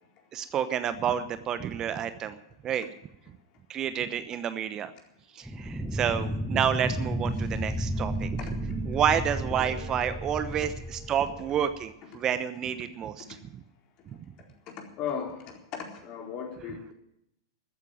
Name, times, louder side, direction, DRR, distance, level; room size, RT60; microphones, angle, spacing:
voice 1, 0.3-2.4 2.6-2.9 3.7-4.9 5.3-8.3 8.6-13.2, right 9 dB, 30° right, 12 dB, 0.9 m, -29 dB
sound 1, 5.5-11.9, equal, ahead, 0.8 m, -33 dB
voice 2, 7.4-7.8 8.4-9.0 9.5-11.7 12.1-12.2 14.1-14.2 14.7-16.9, left 7 dB, 40° left, 2 dB, 4.1 m, -40 dB
14.0 x 9.6 x 9.2 m, 0.80 s
hypercardioid pair, 105°, 2 cm